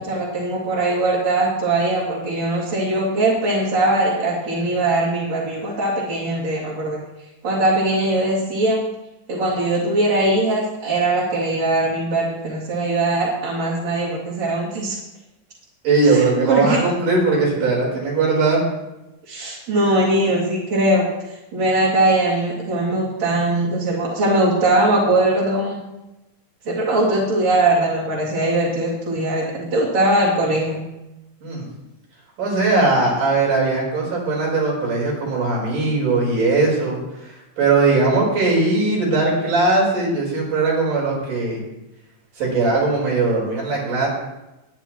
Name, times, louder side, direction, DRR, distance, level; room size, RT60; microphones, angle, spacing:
voice 1, 0.1-7.0 7.4-8.8 9.3-15.0 16.0-16.8 19.3-21.1 21.5-25.8 26.7-30.8, right 2 dB, 60° right, -7 dB, 3.6 m, -20 dB
voice 2, 15.8-18.6 31.4-31.7 32.4-41.6 42.4-44.1, right 3 dB, 80° right, -3 dB, 5.9 m, -19 dB
19.5 x 10.0 x 3.1 m, 0.96 s
omnidirectional pair, 3.6 m